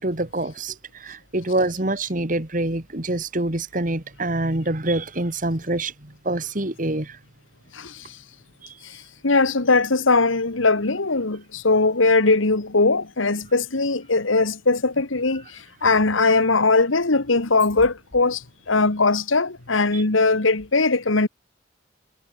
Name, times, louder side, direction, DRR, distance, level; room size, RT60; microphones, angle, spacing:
voice 1, 0.0-7.2 8.6-8.8 19.9-20.0, right 2 dB, 40° right, 2.0 m, -26 dB
voice 2, 7.7-8.2 8.8-21.3, left 3 dB, 90° left, 1.8 m, -20 dB
head